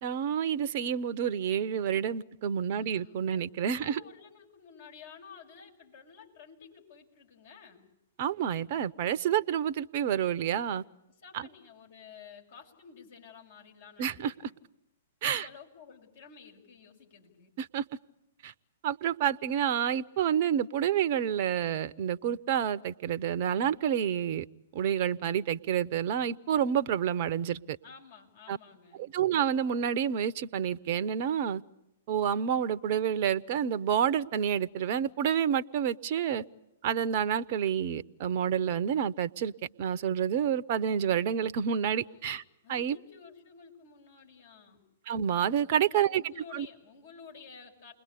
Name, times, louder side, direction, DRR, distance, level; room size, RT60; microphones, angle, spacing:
voice 1, 0.0-4.0 8.2-10.8 11.3-11.5 14.0-14.3 15.2-15.5 17.6-17.8 18.4-18.5 18.8-24.4 24.7-27.8 28.5-28.6 29.0-31.6 32.1-36.4 36.8-39.5 39.8-42.4 42.7-43.0 45.1-46.7, right 9 dB, 45° right, 13 dB, 0.9 m, -29 dB
voice 2, 2.7-3.5 3.8-7.9 11.1-14.6 15.2-17.5 27.8-29.0 42.0-42.3 42.6-44.8 45.8-47.9, left 6 dB, 60° left, 0 dB, 6.9 m, -52 dB
29.0 x 21.5 x 8.5 m, 0.88 s
figure-of-eight pair, 110°, 0 cm